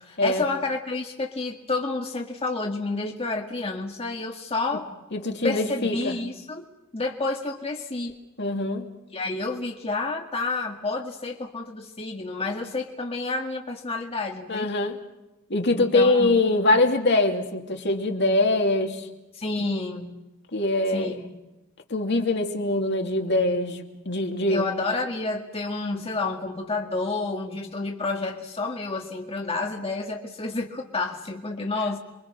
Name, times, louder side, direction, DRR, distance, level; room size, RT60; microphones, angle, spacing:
voice 1, 0.0-4.9 5.4-6.6 6.9-8.1 9.1-14.7 15.7-16.4 19.3-20.2 20.9-21.2 24.5-32.0, left 3 dB, 30° left, 1 dB, 1.9 m, -30 dB
voice 2, 5.1-6.2 8.4-8.9 14.5-15.0 15.5-19.1 20.5-21.1 21.9-24.7, left 2 dB, 55° left, 3 dB, 2.9 m, -23 dB
28.5 x 23.5 x 6.3 m, 0.99 s
head